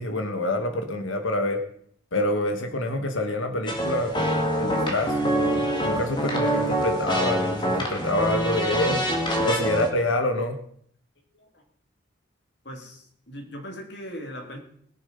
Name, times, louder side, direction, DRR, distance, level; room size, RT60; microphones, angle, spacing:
voice 1, 0.0-1.6 2.1-9.0 9.4-10.6, left 1 dB, 80° left, 6 dB, 1.5 m, -27 dB
sound 1, 3.7-9.9, right 1 dB, 25° left, 2.0 m, -25 dB
voice 2, 12.6-14.6, equal, 55° left, 2 dB, 3.0 m, -39 dB
21.0 x 7.2 x 5.4 m, 0.63 s
head